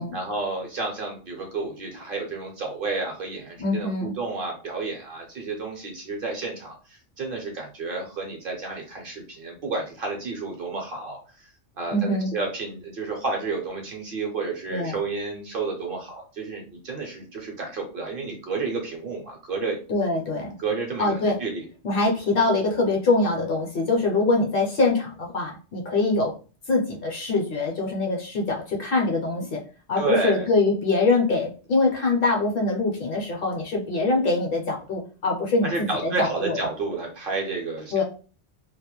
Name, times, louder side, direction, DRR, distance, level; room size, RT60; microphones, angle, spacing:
voice 1, 0.1-11.5 11.8-12.0 12.3-19.8 20.6-21.6 30.0-30.5 35.6-37.9, right 3 dB, 55° right, 1 dB, 0.7 m, -31 dB
voice 2, 3.6-4.1 11.9-12.3 14.7-15.0 19.9-20.6 21.0-21.4 21.8-26.3 26.7-29.6 29.9-35.7 36.0-36.6 37.9-38.0, left 3 dB, 60° left, 0 dB, 0.7 m, -23 dB
2.3 x 2.1 x 2.9 m, 0.37 s
omnidirectional pair, 1.2 m